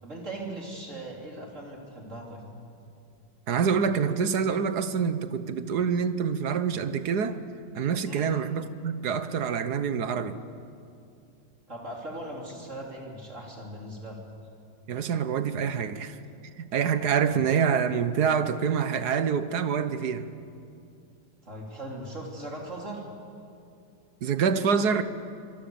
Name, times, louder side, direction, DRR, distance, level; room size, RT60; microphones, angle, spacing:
voice 1, 0.0-2.4 8.0-8.3 11.7-14.2 17.3-17.4 21.5-23.0, right 1 dB, 40° right, -1 dB, 3.6 m, -39 dB
voice 2, 3.5-7.4 7.7-10.4 14.9-16.2 16.6-20.3 24.2-25.0, right 6 dB, 60° right, 12 dB, 1.4 m, -26 dB
25.0 x 24.0 x 7.1 m, 2.5 s
omnidirectional pair, 2.1 m